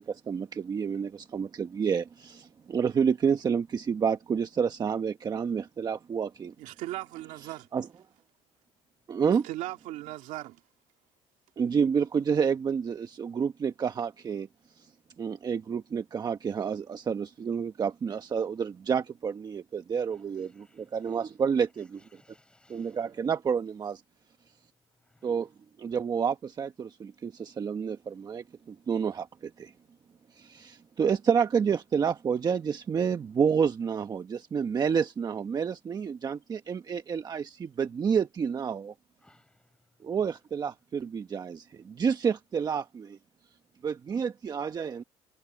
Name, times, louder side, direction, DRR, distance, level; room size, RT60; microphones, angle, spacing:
voice 1, 0.0-6.5 7.7-7.9 9.1-9.4 11.6-14.5 14.7-14.9 15.2-22.0 22.7-24.0 25.2-25.5 25.8-29.7 30.3-38.9 40.0-43.2 43.8-45.0, right 6 dB, 35° right, 1.2 m, -29 dB
voice 2, 6.6-7.7 9.2-10.6, right 16 dB, 80° right, 2.2 m, -38 dB
voice 3, 19.9-21.2 21.8-23.2 24.9-25.5 39.2-39.9 40.2-40.4, left 1 dB, 5° left, 6.4 m, -65 dB
cardioid pair, 115°, 12 cm